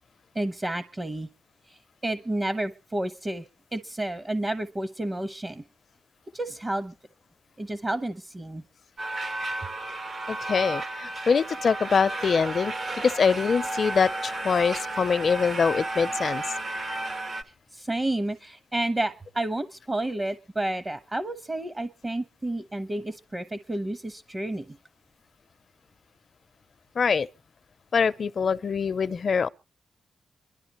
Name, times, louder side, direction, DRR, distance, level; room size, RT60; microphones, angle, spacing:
voice 1, 0.3-1.3 1.7-3.4 3.7-5.6 6.3-6.9 7.6-8.6 17.7-24.8, right 1 dB, 30° right, 1.0 m, -30 dB
sound 1, 9.0-17.4, right 2 dB, 55° right, 1.3 m, -33 dB
voice 2, 10.3-16.4 27.0-27.3 27.9-29.5, left 5 dB, 60° left, 0.6 m, -24 dB
25.5 x 12.0 x 3.0 m
cardioid pair, 65°, 0 cm